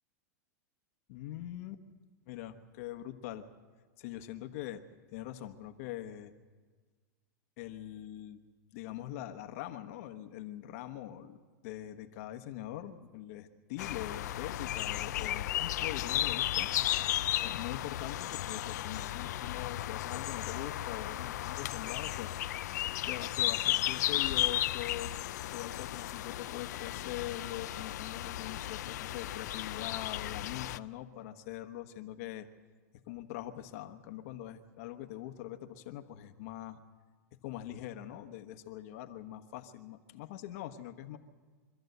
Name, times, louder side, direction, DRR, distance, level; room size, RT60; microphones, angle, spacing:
voice 1, 1.1-1.8 2.3-3.4 4.0-4.8 5.1-6.3 7.6-8.4 8.7-11.4 11.6-16.7 17.4-22.3 23.1-25.1 25.5-32.5 33.1-36.8 37.4-41.2, left 13 dB, 55° left, 7 dB, 1.1 m, -43 dB
sound 1, 13.8-30.8, left 14 dB, 75° left, 0.5 m, -34 dB
25.0 x 13.5 x 8.0 m, 1.5 s
supercardioid pair, 140°, 9 cm